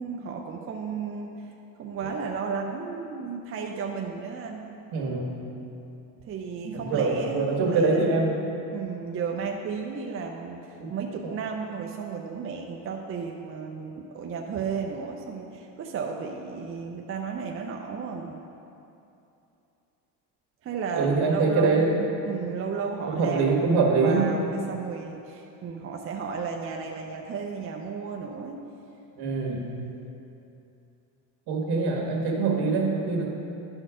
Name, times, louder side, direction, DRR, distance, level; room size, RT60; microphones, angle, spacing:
voice 1, 0.0-1.5 1.8-4.7 6.3-8.1 8.7-18.4 20.6-28.6 29.4-29.6, right 5 dB, 35° right, 1 dB, 0.6 m, -33 dB
voice 2, 4.9-5.4 6.6-8.4 10.8-11.0 20.9-21.9 23.1-24.3 29.2-29.7 31.5-33.2, right 3 dB, 70° right, 0 dB, 1.7 m, -24 dB
11.5 x 4.5 x 4.9 m, 2.8 s
cardioid pair, 125°, 40 cm